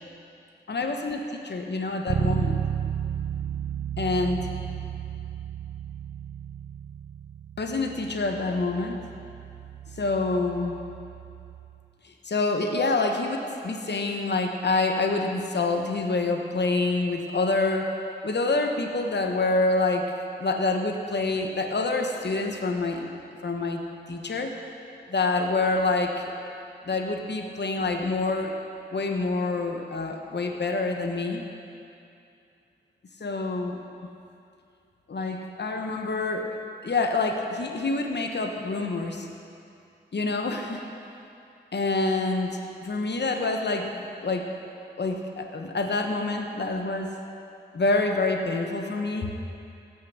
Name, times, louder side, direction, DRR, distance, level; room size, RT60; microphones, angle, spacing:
voice 1, 0.7-2.6 4.0-4.5 7.6-9.1 9.9-10.8 12.0-17.9 18.2-20.1 20.4-23.1 23.4-23.8 24.1-24.6 25.1-26.2 26.8-28.6 28.9-31.4 33.2-33.8 35.1-36.5 36.8-39.3 40.1-40.8 41.7-43.9 44.2-44.5 45.0-47.1 47.7-49.3, left 3 dB, 60° left, 3 dB, 1.2 m, -27 dB
Bass guitar, 2.1-11.9, right 8 dB, 65° right, 0.5 m, -33 dB
16.0 x 6.6 x 7.3 m, 2.6 s
cardioid pair, 45°, 20 cm